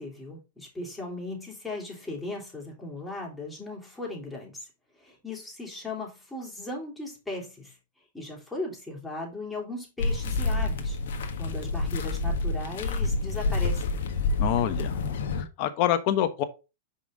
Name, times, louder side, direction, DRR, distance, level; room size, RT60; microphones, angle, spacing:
voice 1, 0.0-4.7 5.0-7.8 8.1-11.0 11.4-13.9, left 2 dB, 5° left, 3.4 m, -37 dB
sound 1, 10.0-15.4, left 3 dB, 70° left, 1.3 m, -28 dB
voice 2, 14.4-15.0 15.6-16.4, left 11 dB, 50° left, 1.1 m, -25 dB
5.7 x 5.4 x 3.7 m
hypercardioid pair, 115°, 0 cm